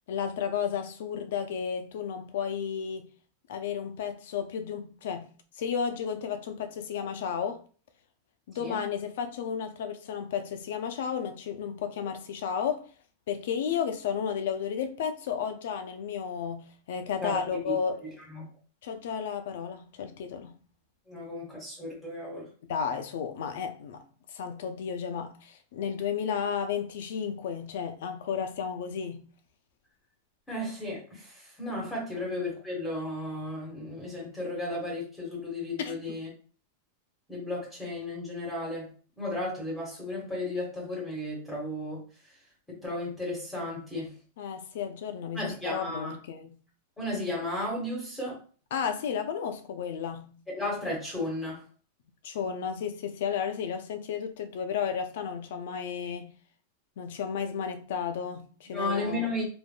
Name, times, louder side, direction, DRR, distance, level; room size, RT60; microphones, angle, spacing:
voice 1, 0.1-3.1 3.5-7.6 8.5-12.9 13.3-18.1 18.8-20.6 22.7-24.0 24.3-29.2 35.8-36.2 44.4-46.6 48.7-50.4 52.2-56.3 57.0-59.4, left 7 dB, 70° left, 0.5 m, -33 dB
voice 2, 21.1-22.5 30.5-36.3 37.3-38.9 39.2-42.0 42.7-44.1 45.3-46.1 47.0-48.4 50.6-51.6 58.7-59.4, left 1 dB, 10° left, 1.3 m, -34 dB
3.4 x 2.4 x 2.2 m
supercardioid pair, 155°, 0 cm